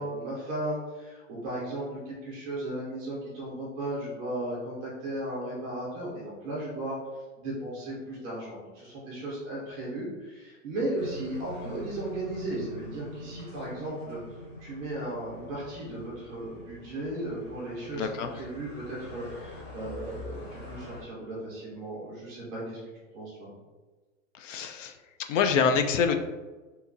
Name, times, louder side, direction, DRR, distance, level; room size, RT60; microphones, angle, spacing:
voice 1, 0.0-7.0 7.4-14.2 14.6-22.8 23.1-23.5, right 1 dB, 10° right, -7 dB, 0.4 m, -36 dB
sound 1, 11.0-21.0, left 1 dB, 50° left, 1.4 m, -44 dB
voice 2, 17.9-18.3 24.3-25.0 25.3-26.2, left 6 dB, 70° left, 6 dB, 0.5 m, -25 dB
2.9 x 2.6 x 3.5 m, 1.3 s
supercardioid pair, 165°, 39 cm